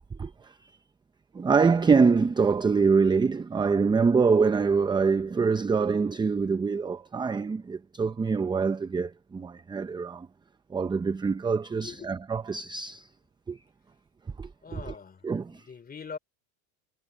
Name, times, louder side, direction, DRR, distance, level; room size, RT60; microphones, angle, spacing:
voice 1, 0.2-0.6 1.3-10.3 10.7-13.1 13.5-13.6 14.4-14.8 15.2-15.6, right 5 dB, 10° right, 0.6 m, -25 dB
voice 2, 11.8-12.1 14.6-16.2, left 5 dB, 20° left, 3.6 m, -43 dB
supercardioid pair, 130°, 44 cm